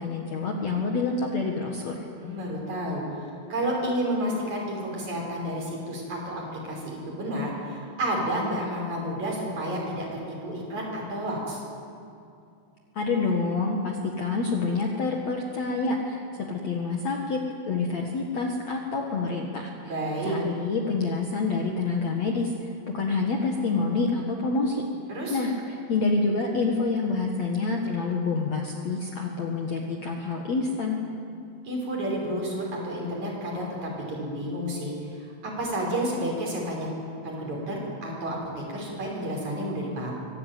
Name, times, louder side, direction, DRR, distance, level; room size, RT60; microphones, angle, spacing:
voice 1, 0.0-1.9 12.9-16.2 16.5-17.4 17.7-19.9 20.2-24.8 25.3-31.0, left 3 dB, 85° left, 1 dB, 1.5 m, -27 dB
voice 2, 2.2-3.0 3.5-11.6 19.8-20.4 25.1-25.4 31.6-36.9 37.2-40.1, right 1 dB, 35° right, -2 dB, 6.5 m, -31 dB
24.5 x 18.0 x 9.4 m, 2.6 s
omnidirectional pair, 6.0 m